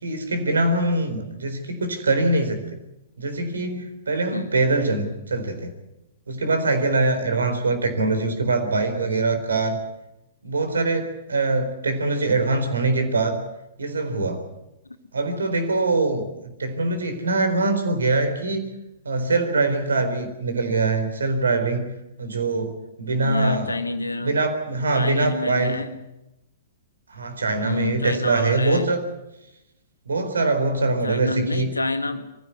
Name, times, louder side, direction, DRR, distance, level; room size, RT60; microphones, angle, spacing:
voice 1, 0.0-2.6 3.2-5.7 6.3-9.8 10.4-13.4 13.8-14.4 15.1-18.7 19.0-21.9 22.2-23.7 24.2-25.8 27.1-29.0 30.1-31.7, right 3 dB, 75° right, 7 dB, 4.2 m, -23 dB
voice 2, 23.2-24.4 24.9-25.9 27.6-28.9 31.0-32.3, left 3 dB, 85° left, 9 dB, 1.8 m, -28 dB
23.5 x 15.5 x 9.6 m, 0.91 s
figure-of-eight pair, 110°, 0 cm